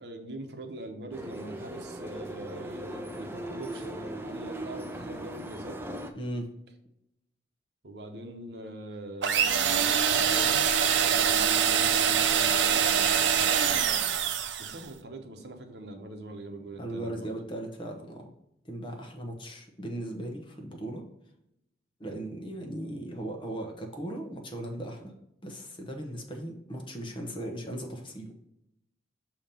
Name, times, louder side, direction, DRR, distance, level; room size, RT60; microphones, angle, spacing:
voice 1, 0.0-5.8 7.8-10.7 10.9-14.1 14.6-17.3, right 1 dB, 65° right, 4 dB, 0.9 m, -43 dB
sound 1, 1.1-6.1, right 1 dB, 10° right, 0.4 m, -38 dB
voice 2, 6.2-6.6 16.8-18.3 18.6-21.0 22.0-25.1 25.4-28.3, right 1 dB, 25° left, 3 dB, 0.9 m, -37 dB
sound 2, 9.2-14.8, right 8 dB, 90° right, 0.6 m, -24 dB
7.0 x 2.9 x 5.3 m, 0.80 s
head